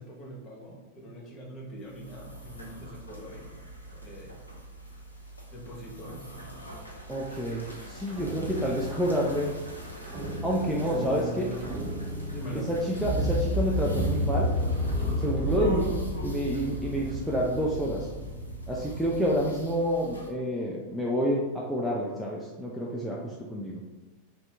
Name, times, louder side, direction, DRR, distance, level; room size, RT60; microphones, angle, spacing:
voice 1, 0.0-3.5 3.9-4.3 5.5-6.5 12.3-12.7, equal, 30° left, -3 dB, 1.0 m, -43 dB
sound 1, 1.8-20.3, right 1 dB, 85° left, 0.5 m, -42 dB
voice 2, 7.1-9.6 10.4-11.5 12.5-14.5 15.2-18.1 18.7-23.8, equal, 5° right, -4 dB, 0.4 m, -29 dB
sound 2, 8.1-19.4, equal, 35° right, 0.7 m, -32 dB
2.7 x 2.5 x 3.3 m, 1.2 s
figure-of-eight pair, 90°, 0 cm